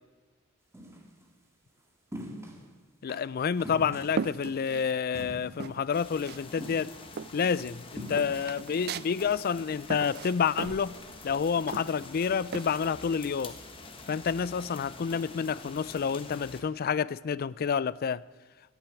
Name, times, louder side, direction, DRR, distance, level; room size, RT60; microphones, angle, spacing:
sound 1, 0.7-1.1 2.1-2.6 3.1-3.2 3.6-4.6 5.1-5.8 6.1-6.3 6.6-7.3 8.0-8.5, equal, 15° right, 2.0 m, -42 dB
voice 1, 3.0-6.9 7.3-11.0 11.2-13.6 14.1-18.2, left 6 dB, 45° left, 0.4 m, -29 dB
sound 2, 3.4-5.3 5.6-6.5 6.7-12.8, right 5 dB, 50° right, 0.4 m, -39 dB
sound 3, 5.9-16.6, left 3 dB, 25° left, 1.4 m, -47 dB
14.5 x 9.0 x 9.6 m
head